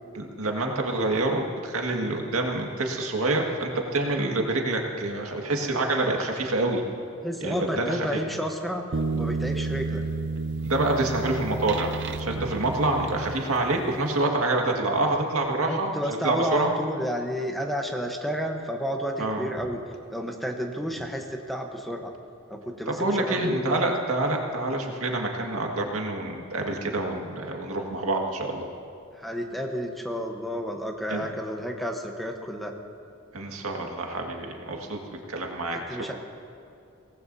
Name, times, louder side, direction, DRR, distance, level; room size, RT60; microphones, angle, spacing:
voice 1, 0.1-6.8 7.4-8.1 10.6-11.9 12.2-16.8 19.2-19.5 22.9-28.7 31.1-31.3 33.3-35.0 35.3-36.1, right 2 dB, 85° right, 1 dB, 1.8 m, -27 dB
voice 2, 7.2-10.0 15.6-19.8 20.1-22.1 22.5-23.8 29.2-32.7 35.7-36.1, equal, ahead, 2 dB, 0.9 m, -31 dB
sound 1, 8.9-13.8, right 3 dB, 55° right, 0.6 m, -31 dB
23.5 x 18.0 x 2.7 m, 2.4 s
head